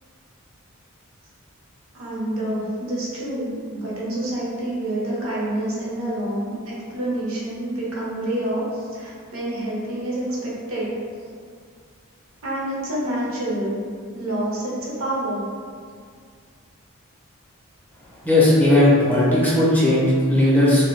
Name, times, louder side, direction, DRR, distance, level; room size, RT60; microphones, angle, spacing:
voice 1, 1.9-10.9 12.4-13.8 14.1-15.4, right 1 dB, 75° right, -6 dB, 0.7 m, -27 dB
voice 2, 18.2-20.8, left 1 dB, 10° left, -8 dB, 0.4 m, -16 dB
2.2 x 2.1 x 3.0 m, 2.1 s
head